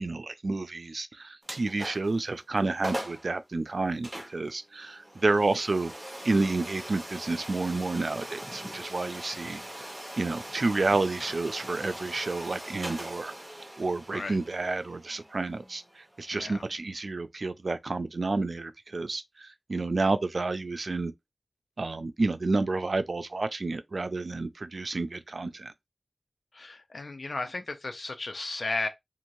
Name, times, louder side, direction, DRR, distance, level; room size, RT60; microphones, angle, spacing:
voice 1, 0.0-5.9 6.2-9.6 10.2-13.3 13.8-15.8 16.2-19.2 19.7-21.1 21.8-25.7, right 3 dB, 80° right, 0.4 m, -30 dB
sound 1, 1.4-2.2 2.6-2.7 2.8-3.3 4.0-16.8, right 1 dB, 25° right, 1.1 m, -41 dB
voice 2, 16.3-16.6 26.5-28.9, left 2 dB, 80° left, 0.4 m, -34 dB
2.7 x 2.4 x 3.0 m
wide cardioid pair, 50°, 0 cm